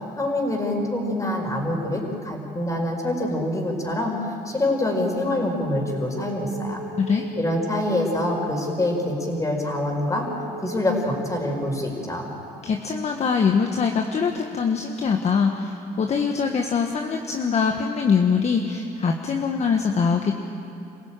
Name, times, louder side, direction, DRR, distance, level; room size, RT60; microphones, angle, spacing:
voice 1, 0.2-6.8 7.3-10.3 10.6-12.3, left 1 dB, 20° left, 2 dB, 5.0 m, -25 dB
sound 1, 5.7-11.6, right 1 dB, 20° right, 6.2 m, -38 dB
voice 2, 12.6-20.3, left 5 dB, 40° left, 3 dB, 1.4 m, -23 dB
27.0 x 16.0 x 9.0 m, 2.9 s
cardioid pair, 110°, 17 cm